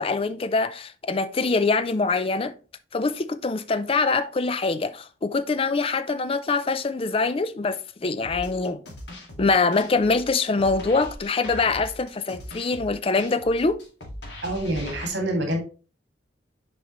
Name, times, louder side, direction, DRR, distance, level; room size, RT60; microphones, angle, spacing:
voice 1, 0.0-2.5 2.9-8.8 9.4-13.8, left 3 dB, 30° left, 0.4 m, -24 dB
sound 1, 8.2-15.1, left 1 dB, 70° left, 1.9 m, -40 dB
voice 2, 14.4-15.6, right 1 dB, 70° right, 2.0 m, -26 dB
7.2 x 4.7 x 3.0 m
head